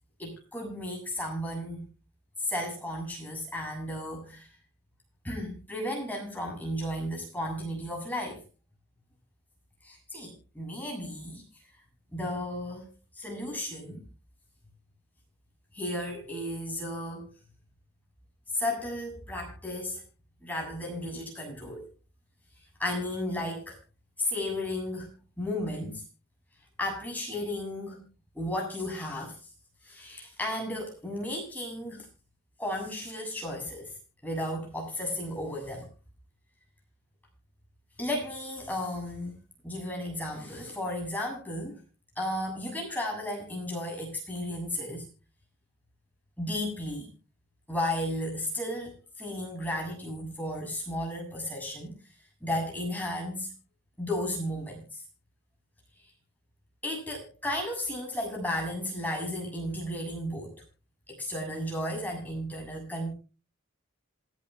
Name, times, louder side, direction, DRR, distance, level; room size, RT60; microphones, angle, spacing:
voice 1, 0.2-1.9 2.4-4.5 5.2-8.4 9.8-11.4 12.1-14.0 15.7-17.3 18.5-20.0 20.4-21.9 22.8-23.8 24.2-25.1 25.4-26.0 26.8-28.1 28.3-29.4 29.8-32.1 32.6-33.9 34.2-35.9 38.0-39.3 39.6-41.8 42.2-45.1 46.4-47.1 47.7-52.0 52.4-53.5 54.0-55.0 56.8-60.6 61.1-63.1, left 1 dB, 10° left, 0 dB, 7.3 m, -34 dB
28.0 x 11.0 x 2.3 m, 0.32 s
head